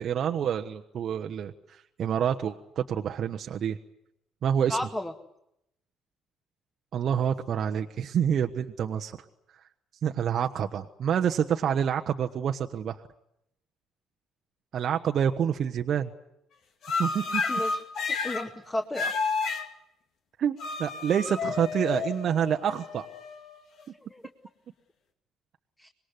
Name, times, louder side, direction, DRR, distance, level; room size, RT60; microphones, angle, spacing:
voice 1, 0.0-3.8 4.4-4.8 6.9-9.2 10.0-13.0 14.7-16.1 17.0-17.4 20.4-23.1, right 8 dB, 55° right, 5 dB, 1.1 m, -27 dB
voice 2, 4.7-5.1 17.5-17.8 18.1-19.1 24.1-24.2 25.8-25.9, left 1 dB, 15° left, 5 dB, 1.9 m, -33 dB
sound 1, 16.8-18.5 18.9-19.7 20.6-23.8, left 4 dB, 60° left, 2.6 m, -31 dB
25.5 x 21.0 x 9.5 m, 0.80 s
hypercardioid pair, 50°, 0 cm